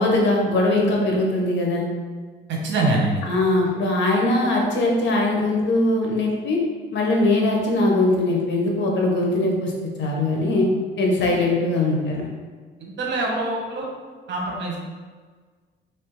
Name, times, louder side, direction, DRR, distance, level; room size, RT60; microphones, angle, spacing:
voice 1, 0.0-1.9 3.2-6.6 6.9-9.7 10.0-10.7 11.0-12.3, left 2 dB, 65° left, -1 dB, 0.9 m, -21 dB
voice 2, 2.5-3.2 12.8-13.8 14.3-14.8, right 2 dB, 65° right, -1 dB, 0.9 m, -24 dB
3.4 x 3.3 x 3.0 m, 1.5 s
cardioid pair, 90°, 20 cm